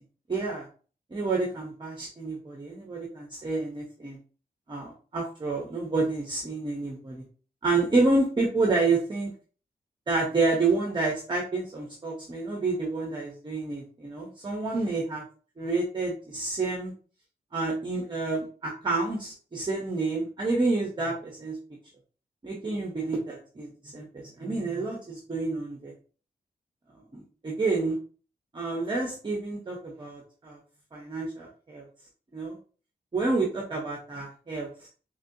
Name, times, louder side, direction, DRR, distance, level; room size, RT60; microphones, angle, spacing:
voice 1, 0.3-0.7 1.1-4.2 4.7-7.2 7.6-9.3 10.1-15.2 15.6-16.9 17.5-21.6 22.4-25.9 27.1-28.0 28.5-30.6 30.9-31.9 32.3-32.6 33.1-34.9, right 3 dB, 30° right, -2 dB, 0.7 m, -29 dB
4.1 x 3.1 x 2.6 m, 0.39 s
wide cardioid pair, 180°, 17 cm